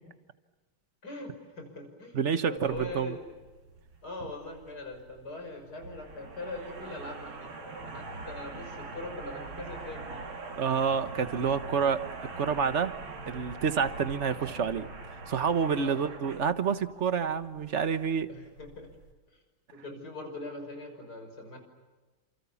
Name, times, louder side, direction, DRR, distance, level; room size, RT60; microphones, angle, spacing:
voice 1, 1.0-3.2 4.0-10.2 14.3-14.4 15.8-16.1 18.3-18.9 19.7-21.6, left 2 dB, 50° left, 5 dB, 6.4 m, -42 dB
voice 2, 2.1-3.2 10.6-12.9 13.3-14.9 15.3-18.3, right 6 dB, 40° right, 11 dB, 1.3 m, -28 dB
sound 1, 2.6-19.1, right 3 dB, 80° right, 3.6 m, -44 dB
30.0 x 28.0 x 7.1 m, 1.3 s
omnidirectional pair, 2.2 m